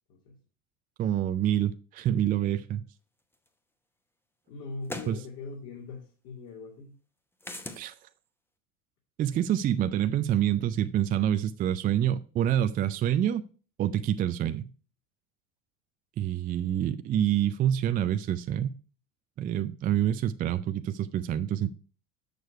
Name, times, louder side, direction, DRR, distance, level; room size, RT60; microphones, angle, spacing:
voice 1, 1.0-2.8 5.1-5.2 7.8-7.9 9.2-13.4 13.8-14.7 16.2-18.7 19.4-21.7, right 11 dB, 25° right, 0.3 m, -27 dB
sound 1, 3.5-3.6 4.8-5.2 7.4-7.8, left 1 dB, 5° left, 0.9 m, -38 dB
voice 2, 4.5-6.9, left 3 dB, 50° left, 2.2 m, -41 dB
6.6 x 6.4 x 4.5 m
hypercardioid pair, 85°, 38 cm